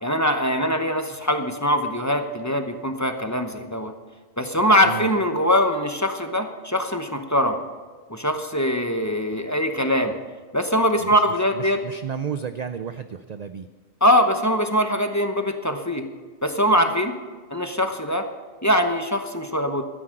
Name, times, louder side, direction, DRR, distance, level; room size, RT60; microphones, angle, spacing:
voice 1, 0.0-3.9 4.4-7.6 8.1-10.2 10.5-11.8 14.0-16.0 16.4-17.1 17.5-18.3 18.6-19.8, equal, 15° left, 6 dB, 0.8 m, -22 dB
voice 2, 11.5-13.7, right 7 dB, 65° right, 10 dB, 0.4 m, -32 dB
13.5 x 9.8 x 6.5 m, 1.4 s
omnidirectional pair, 1.3 m